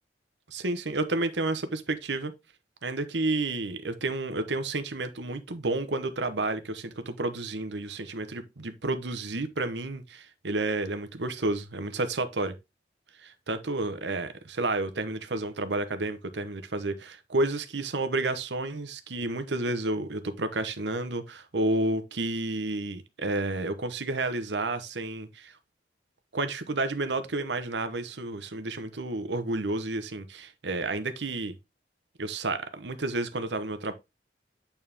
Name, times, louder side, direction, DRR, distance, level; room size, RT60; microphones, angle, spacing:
voice 1, 0.5-2.3 2.8-12.5 13.2-25.5 26.3-31.5 32.2-33.9, right 2 dB, 75° right, 1.0 m, -31 dB
8.9 x 4.3 x 3.5 m
head